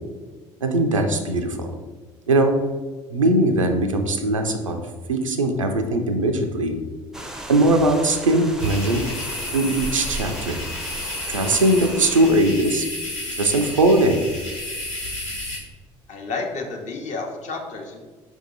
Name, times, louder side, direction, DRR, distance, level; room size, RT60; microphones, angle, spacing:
voice 1, 0.6-1.7 2.3-2.5 3.1-4.8 5.1-6.8 7.5-9.0 9.5-10.6 11.3-12.9 13.4-14.3, right 1 dB, 90° right, 5 dB, 0.4 m, -20 dB
sound 1, 7.1-12.3, right 1 dB, 5° right, 0.5 m, -36 dB
sound 2, 8.6-15.6, left 1 dB, 85° left, 1.4 m, -32 dB
voice 2, 16.1-18.0, left 3 dB, 50° left, 2 dB, 0.8 m, -31 dB
4.6 x 2.7 x 3.8 m, 1.3 s
figure-of-eight pair, 55°, 16 cm